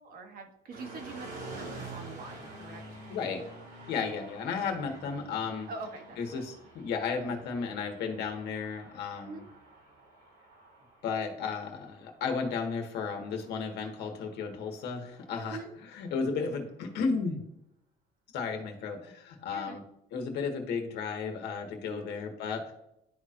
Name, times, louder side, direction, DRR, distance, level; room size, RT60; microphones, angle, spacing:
voice 1, 0.0-2.8 4.9-5.0 5.7-6.4 7.3-7.4 9.2-9.4 15.5-15.7 19.5-19.8 21.9-22.1, right 3 dB, 60° right, 3 dB, 1.5 m, -44 dB
sound 1, 0.7-14.7, right 2 dB, 85° right, 2.9 m, -48 dB
voice 2, 3.1-3.4 3.9-5.7 6.2-9.4 11.0-15.6 15.9-17.4 18.3-19.8 20.1-22.7, left 5 dB, 75° left, 3 dB, 1.6 m, -34 dB
11.5 x 4.3 x 2.5 m, 0.80 s
cardioid pair, 110°, 17 cm